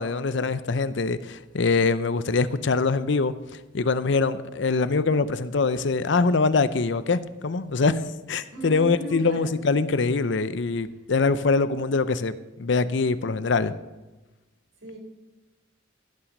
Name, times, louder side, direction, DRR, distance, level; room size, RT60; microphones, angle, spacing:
voice 1, 0.0-3.3 3.7-8.0 8.3-12.3 12.6-13.7, left 4 dB, 60° left, 0.6 m, -23 dB
voice 2, 8.5-9.5 10.9-11.0 14.8-15.0, right 2 dB, 65° right, 3.9 m, -36 dB
16.0 x 6.0 x 6.5 m
head